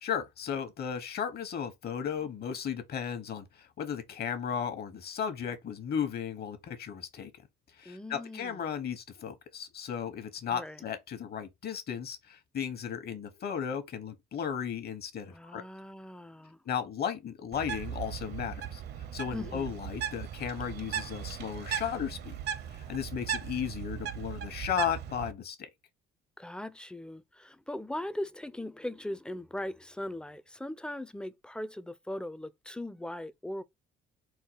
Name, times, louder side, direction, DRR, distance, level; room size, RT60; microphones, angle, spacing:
voice 1, 0.0-7.3 7.7-15.6 16.6-18.8 19.1-22.3 22.7-25.7, left 8 dB, 55° left, 1.1 m, -35 dB
voice 2, 7.8-8.6 10.5-10.8 15.2-16.6 19.3-19.7 26.4-33.6, left 1 dB, 5° left, 0.4 m, -39 dB
Bird, 17.5-25.3, right 9 dB, 60° right, 0.7 m, -38 dB
4.6 x 2.3 x 4.5 m
supercardioid pair, 85°, 19 cm